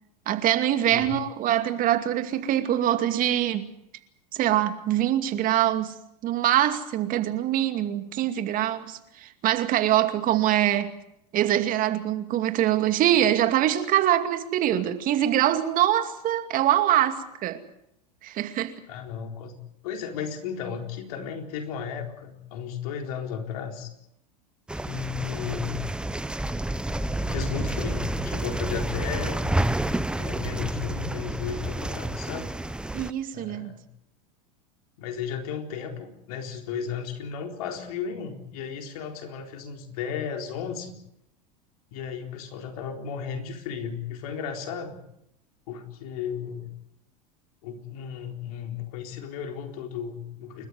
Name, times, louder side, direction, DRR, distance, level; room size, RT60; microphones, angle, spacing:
voice 1, 0.3-3.7 4.3-5.9 6.2-10.9 11.3-17.6 18.2-18.7 32.9-33.7, right 12 dB, 45° right, 2.4 m, -24 dB
voice 2, 0.9-1.2 18.9-19.6 19.8-23.9 24.8-25.9 27.3-29.5 30.2-32.5 33.3-33.8 35.0-40.9 41.9-45.0 45.7-46.7 47.6-50.7, left 7 dB, 65° left, 4.1 m, -34 dB
sound 1, 24.7-33.1, right 1 dB, 5° right, 0.9 m, -29 dB
29.5 x 13.5 x 9.5 m
hypercardioid pair, 95°, 20 cm